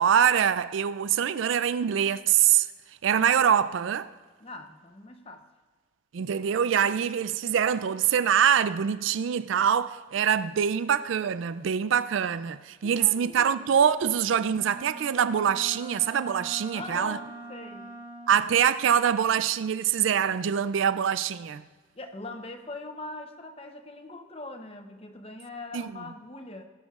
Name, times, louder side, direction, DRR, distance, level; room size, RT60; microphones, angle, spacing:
voice 1, 0.0-2.7 3.0-4.1 6.1-17.2 18.3-21.6 25.7-25.9, right 8 dB, 70° right, 0.4 m, -24 dB
voice 2, 4.4-5.4 12.8-13.7 16.7-17.9 21.9-26.7, left 2 dB, 30° left, 0.8 m, -41 dB
Wind instrument woodwind instrument, 14.5-18.6, right 2 dB, 25° right, 1.2 m, -43 dB
17.0 x 11.5 x 2.4 m
head